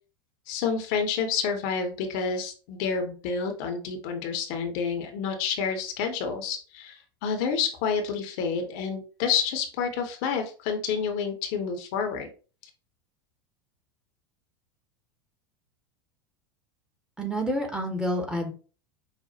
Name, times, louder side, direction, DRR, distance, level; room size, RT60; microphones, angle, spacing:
voice 1, 0.5-12.3, left 6 dB, 50° left, 5 dB, 0.8 m, -29 dB
voice 2, 17.2-18.5, equal, 5° right, 2 dB, 0.9 m, -28 dB
5.7 x 2.1 x 2.8 m, 0.37 s
figure-of-eight pair, 80°, 13 cm